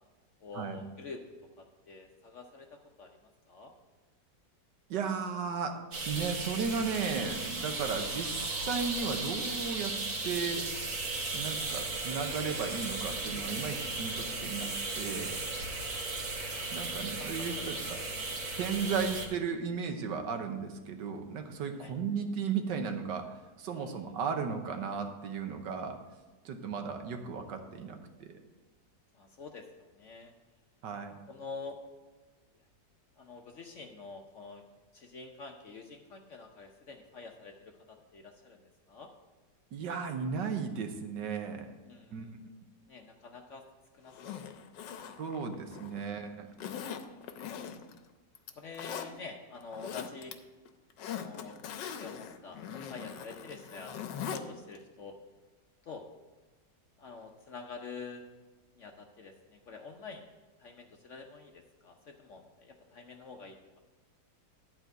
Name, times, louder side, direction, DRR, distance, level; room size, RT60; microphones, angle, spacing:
voice 1, 0.4-3.7 16.7-18.3 21.8-22.0 23.7-24.1 29.1-30.3 31.3-31.8 32.5-32.6 33.2-34.6 34.9-39.1 41.8-42.3 42.9-43.6 43.9-44.4 44.7-45.1 48.6-50.3 51.0-55.2 55.8-56.0 57.0-58.2 58.7-60.3 60.6-63.8, left 4 dB, 55° left, 3 dB, 0.9 m, -47 dB
voice 2, 4.9-5.7 6.0-9.9 10.2-10.6 11.3-14.7 14.9-15.3 16.7-18.0 18.6-23.3 23.6-26.0 26.4-28.3 30.8-31.2 39.7-41.7 42.1-42.4 45.2-46.5, right 5 dB, 80° right, 5 dB, 1.6 m, -35 dB
sound 1, 5.9-19.3, right 3 dB, 60° right, 1.8 m, -36 dB
Zipper (clothing), 44.1-46.0 46.6-48.0 48.4-49.1 49.6-50.3 50.7-54.4 54.8-54.9, left 8 dB, 80° left, 1.3 m, -41 dB
11.5 x 4.4 x 7.9 m, 1.2 s
omnidirectional pair, 1.9 m